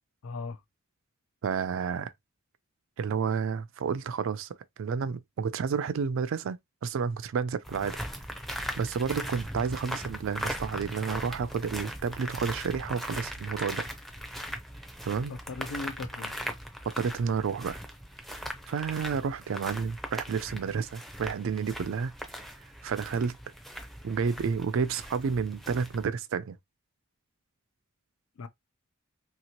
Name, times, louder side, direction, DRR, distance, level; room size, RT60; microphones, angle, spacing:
voice 1, 0.2-0.6 15.3-16.4 28.4-28.5, left 3 dB, 75° left, 0.5 m, -38 dB
voice 2, 1.4-2.1 3.0-4.5 4.8-8.0 8.8-13.8 15.1-15.3 17.0-17.8 18.7-22.1 22.8-23.4 24.0-26.6, right 6 dB, 65° right, 0.3 m, -30 dB
sound 1, 7.6-26.0, equal, ahead, 0.5 m, -39 dB
2.9 x 2.9 x 2.8 m
head